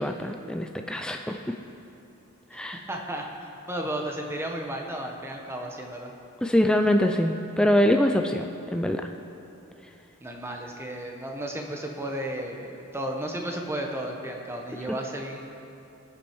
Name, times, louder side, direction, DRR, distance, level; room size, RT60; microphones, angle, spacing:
voice 1, 0.0-1.6 2.5-2.8 6.4-9.0, left 1 dB, 5° left, 4 dB, 0.4 m, -24 dB
voice 2, 2.9-3.3 3.7-6.1 10.2-15.4, right 1 dB, 10° right, 1 dB, 1.0 m, -33 dB
19.5 x 7.6 x 4.7 m, 2.7 s
head